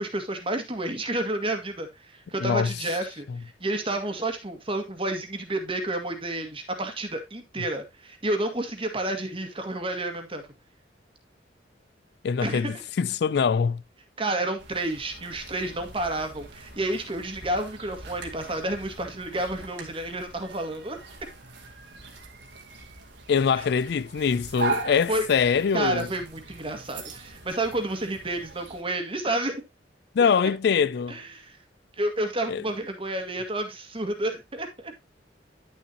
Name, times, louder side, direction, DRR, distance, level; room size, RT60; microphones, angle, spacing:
voice 1, 0.0-3.3 3.6-10.4 12.4-12.8 14.2-21.0 25.1-25.3 25.7-29.6 31.1-31.6 32.0-34.9, right 1 dB, 30° right, 1.9 m, -30 dB
voice 2, 2.4-2.7 3.3-3.4 12.2-13.8 23.3-26.1 30.1-31.2 32.5-32.6, left 6 dB, 65° left, 0.4 m, -23 dB
sound 1, 14.6-28.8, right 3 dB, 75° right, 2.3 m, -40 dB
11.0 x 7.0 x 2.9 m
head